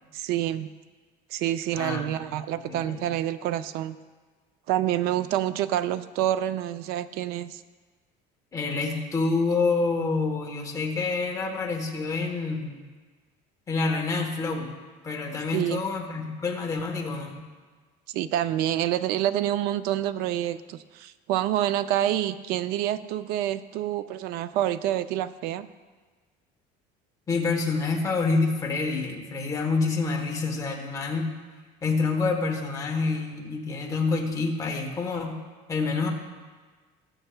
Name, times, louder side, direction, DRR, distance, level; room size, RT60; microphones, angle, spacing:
voice 1, 0.1-0.7 1.3-4.0 4.7-7.6 15.5-15.8 18.1-25.7, right 12 dB, 60° right, 13 dB, 0.4 m, -27 dB
voice 2, 1.7-2.3 2.7-3.1 8.5-12.8 13.7-14.7 15.0-17.4 27.3-31.3 31.8-35.4 35.7-36.1, left 4 dB, 20° left, 1 dB, 1.1 m, -27 dB
18.0 x 7.9 x 2.2 m, 1.4 s
cardioid pair, 175°, 18 cm